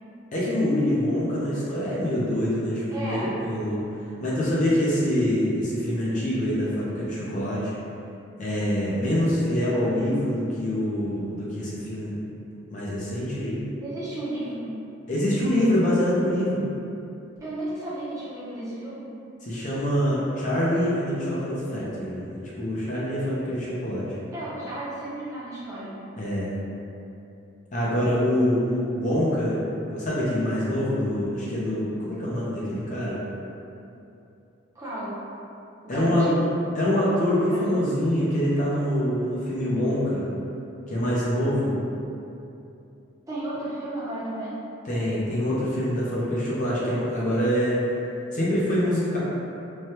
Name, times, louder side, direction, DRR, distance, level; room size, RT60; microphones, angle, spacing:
voice 1, 0.3-3.8 4.2-7.7 8.4-12.3 12.7-13.6 15.1-16.6 19.4-24.2 26.2-26.5 27.7-28.7 29.0-29.6 29.9-33.2 35.9-36.3 36.8-40.3 40.9-41.8 44.9-47.8 48.3-49.2, equal, 40° left, -7 dB, 0.5 m, -25 dB
voice 2, 2.9-3.4 13.8-14.7 17.4-19.0 24.3-26.1 34.7-35.2 35.8-36.4 37.5-37.6 43.3-44.6, right 1 dB, 15° right, -9 dB, 0.6 m, -33 dB
3.2 x 2.2 x 2.7 m, 2.8 s
head